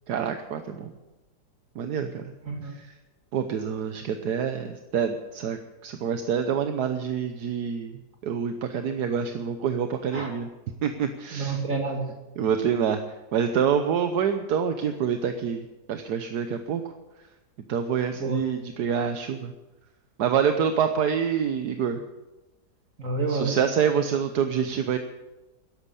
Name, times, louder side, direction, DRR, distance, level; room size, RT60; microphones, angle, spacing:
voice 1, 0.1-0.9 1.8-2.3 2.8-2.9 3.3-7.9 8.2-10.5 10.8-11.6 12.4-13.0 13.3-16.8 17.7-19.5 20.2-22.0 23.3-25.0, right 7 dB, 75° right, 8 dB, 1.5 m, -26 dB
voice 2, 11.3-12.1 18.1-18.4 23.0-23.6, right 3 dB, 50° right, 3 dB, 3.0 m, -29 dB
13.5 x 11.0 x 8.5 m, 1.0 s
omnidirectional pair, 1.8 m